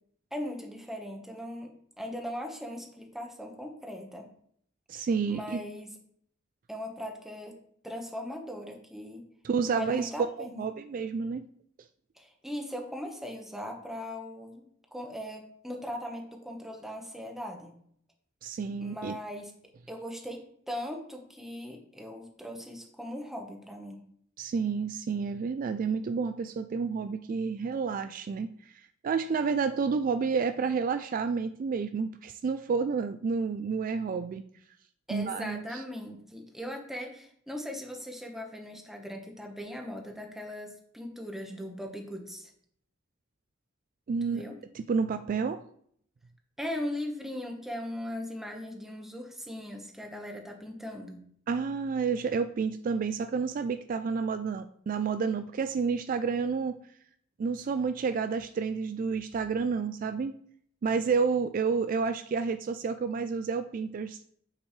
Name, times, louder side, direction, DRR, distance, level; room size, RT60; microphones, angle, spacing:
voice 1, 0.3-1.7 2.0-4.3 5.0-5.9 6.7-7.6 7.8-9.2 9.7-10.7 12.2-17.7 18.8-19.5 19.9-24.0 35.1-42.5 44.3-44.6 46.6-51.2, left 1 dB, ahead, 2 dB, 1.2 m, -39 dB
voice 2, 4.9-5.6 9.4-10.1 10.4-11.5 18.4-19.2 24.4-34.4 35.1-35.8 44.1-44.4 44.7-45.6 51.5-56.8 57.4-60.4 60.8-64.3, right 5 dB, 45° right, 10 dB, 0.3 m, -30 dB
8.1 x 6.7 x 3.2 m, 0.66 s
head